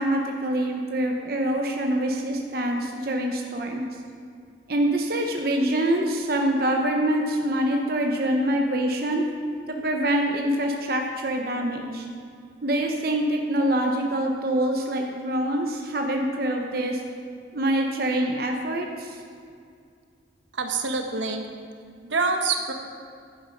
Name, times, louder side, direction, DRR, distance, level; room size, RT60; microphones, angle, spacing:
voice 1, 0.0-3.9 4.7-9.2 9.7-12.1 12.6-17.0 17.5-19.2, right 1 dB, 50° right, 2 dB, 0.9 m, -25 dB
voice 2, 20.6-21.4 22.0-22.7, right 4 dB, 80° right, 4 dB, 1.1 m, -26 dB
11.0 x 9.5 x 5.2 m, 2.3 s
head